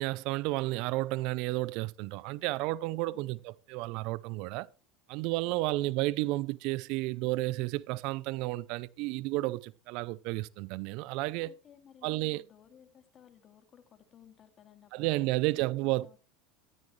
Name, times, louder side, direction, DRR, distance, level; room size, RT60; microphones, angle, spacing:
voice 1, 0.0-4.7 5.1-11.5 12.0-12.4 14.9-16.1, right 19 dB, 65° right, 0.5 m, -32 dB
voice 2, 3.1-3.4 5.4-5.9 11.4-16.2, left 9 dB, 40° left, 2.4 m, -58 dB
15.5 x 13.5 x 3.2 m
supercardioid pair, 100°, 0 cm